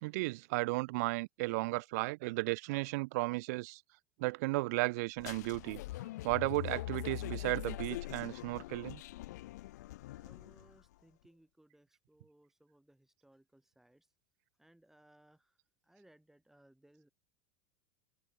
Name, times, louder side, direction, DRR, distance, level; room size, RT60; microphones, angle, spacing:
voice 1, 0.0-3.8 4.2-5.8 6.2-9.0, right 24 dB, 70° right, 1.3 m, -34 dB
sound 1, 5.2-10.8, left 17 dB, 80° left, 1.3 m, -43 dB
voice 2, 10.1-14.1 14.6-17.1, right 1 dB, 5° right, 7.2 m, -66 dB
supercardioid pair, 110°, 9 cm